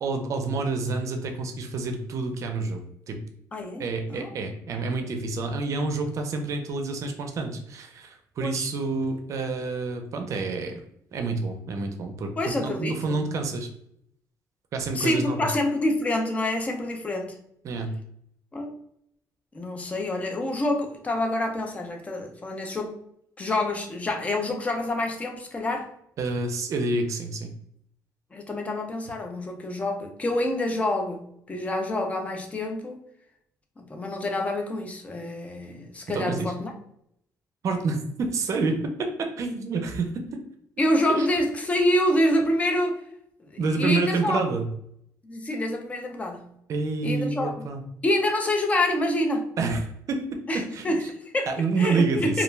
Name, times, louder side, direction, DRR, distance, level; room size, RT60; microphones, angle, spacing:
voice 1, 0.0-2.8 3.1-3.2 3.8-10.8 11.1-13.7 14.7-15.5 17.6-17.9 26.2-27.5 36.1-36.5 37.6-40.4 41.1-41.3 43.6-44.7 46.7-47.8 49.6-49.8 50.1-51.0 51.5-52.4, right 3 dB, 50° right, 5 dB, 0.5 m, -28 dB
voice 2, 3.5-3.8 4.1-4.3 8.4-8.6 12.4-13.4 14.9-17.4 18.5-18.7 19.5-22.9 23.4-25.9 28.3-33.0 33.8-36.7 40.8-43.0 43.5-44.4 45.3-46.5 47.0-47.7 48.0-49.5 50.5-52.4, left 1 dB, 20° left, 3 dB, 0.4 m, -27 dB
2.3 x 2.2 x 3.1 m, 0.72 s
cardioid pair, 135°, 7 cm